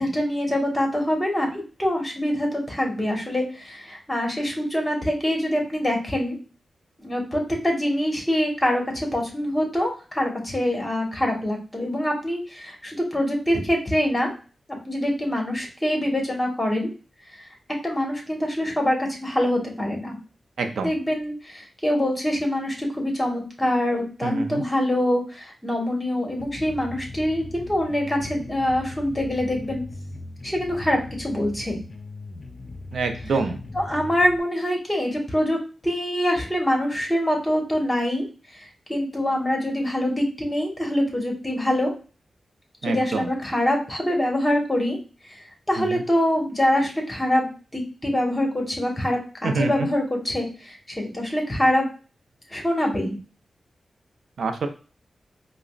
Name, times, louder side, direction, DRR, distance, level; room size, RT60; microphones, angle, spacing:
voice 1, 0.0-6.4 7.0-14.3 14.9-16.9 17.8-20.1 20.8-29.8 30.4-31.8 33.7-35.6 35.8-38.2 38.9-41.9 42.8-45.0 45.3-45.4 45.7-51.8 52.5-53.2, left 1 dB, 15° left, 0 dB, 1.3 m, -24 dB
voice 2, 20.6-20.9 24.2-24.6 32.9-33.6 42.8-43.3 45.8-46.0 49.4-49.7 54.4-54.7, right 4 dB, 90° right, 6 dB, 0.4 m, -26 dB
sound 1, 26.4-34.4, left 2 dB, 50° left, 0.5 m, -39 dB
4.9 x 2.0 x 2.3 m, 0.35 s
cardioid pair, 70°, 0 cm